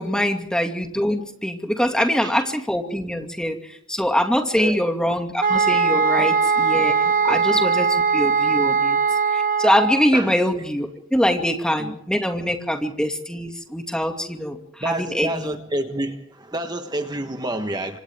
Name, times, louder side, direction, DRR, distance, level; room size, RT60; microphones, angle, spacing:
voice 1, 0.0-3.6 3.9-7.9 8.1-9.0 9.3-14.6 14.8-15.6, equal, 5° left, 3 dB, 2.3 m, -23 dB
voice 2, 2.0-2.4 4.5-4.8 6.2-6.3 7.2-7.6 10.1-10.3 11.8-11.9 14.8-18.0, right 1 dB, 20° right, 6 dB, 1.3 m, -29 dB
sound 1, 5.4-10.1, right 5 dB, 45° right, 0.9 m, -20 dB
28.0 x 26.0 x 3.7 m, 0.66 s
head